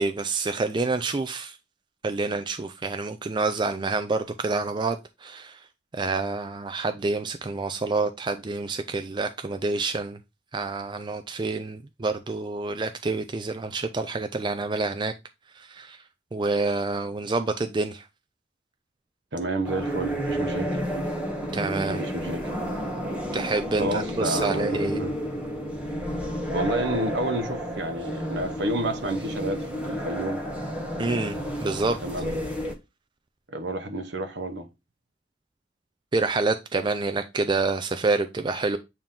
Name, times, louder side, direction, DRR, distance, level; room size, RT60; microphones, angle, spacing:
voice 1, 0.0-1.6 2.0-5.6 5.9-10.2 10.5-15.1 15.6-16.0 16.3-18.0 21.5-22.0 23.3-25.0 31.0-31.4 31.6-32.0 36.1-38.8, right 3 dB, 25° right, 0.4 m, -27 dB
voice 2, 19.3-20.8 21.8-22.4 23.8-25.1 26.5-30.4 32.0-32.3 33.5-34.7, right 1 dB, 70° right, 1.0 m, -30 dB
sound 1, 19.6-32.7, equal, 5° right, 1.1 m, -31 dB
8.7 x 2.9 x 3.7 m
head